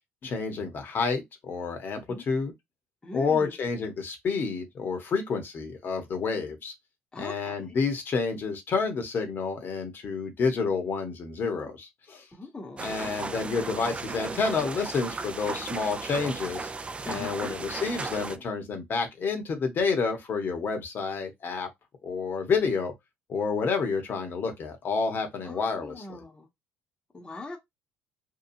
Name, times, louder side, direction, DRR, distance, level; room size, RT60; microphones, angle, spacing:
voice 1, 0.2-2.5 3.1-6.7 7.2-12.2 12.8-16.7 17.1-21.7 22.0-22.9 23.3-26.0, left 5 dB, 45° left, 1.0 m, -29 dB
voice 2, 3.0-3.5 7.1-7.8 12.3-12.9 17.0-17.6 25.4-26.5 27.1-27.6, left 3 dB, 20° left, 0.8 m, -41 dB
sound 1, 12.8-18.4, right 4 dB, 25° right, 0.3 m, -35 dB
2.8 x 2.3 x 2.6 m
supercardioid pair, 90°, 5 cm